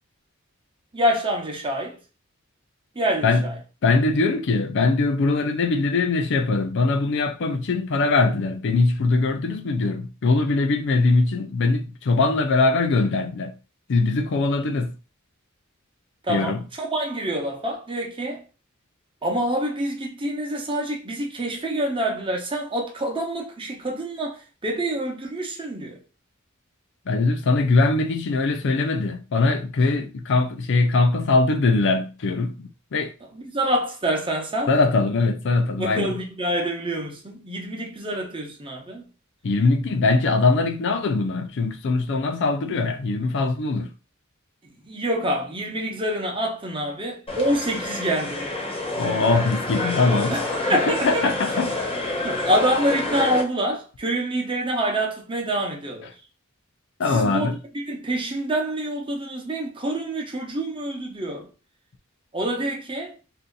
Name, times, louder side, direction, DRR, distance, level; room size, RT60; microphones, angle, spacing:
voice 1, 0.9-2.0 2.9-3.6 16.2-18.4 19.2-26.0 33.3-34.7 35.8-39.0 44.8-48.5 50.3-51.3 52.2-56.1 57.1-61.5 62.3-63.1, right 1 dB, 25° right, 0.8 m, -26 dB
voice 2, 3.8-13.5 13.9-14.9 16.3-16.6 27.1-33.1 34.7-36.1 39.4-43.9 48.9-51.7 57.0-57.6, left 3 dB, 60° left, 0.5 m, -22 dB
sound 1, 47.3-53.4, left 2 dB, 30° left, 0.8 m, -28 dB
2.7 x 2.4 x 3.7 m
head